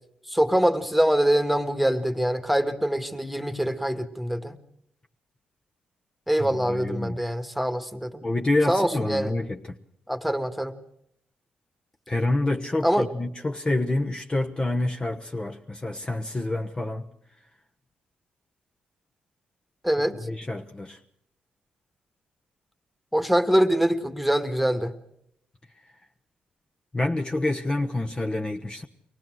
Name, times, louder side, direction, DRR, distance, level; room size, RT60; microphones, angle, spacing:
voice 1, 0.3-4.6 6.3-8.3 8.7-9.3 10.1-10.7 12.8-13.1 19.8-20.2 23.1-24.9, right 1 dB, ahead, 1.8 m, -24 dB
voice 2, 6.4-7.2 8.2-9.8 12.1-17.1 20.2-21.0 26.9-28.8, left 2 dB, 25° left, 1.1 m, -27 dB
23.5 x 18.0 x 6.3 m
cardioid pair, 70°, 3 cm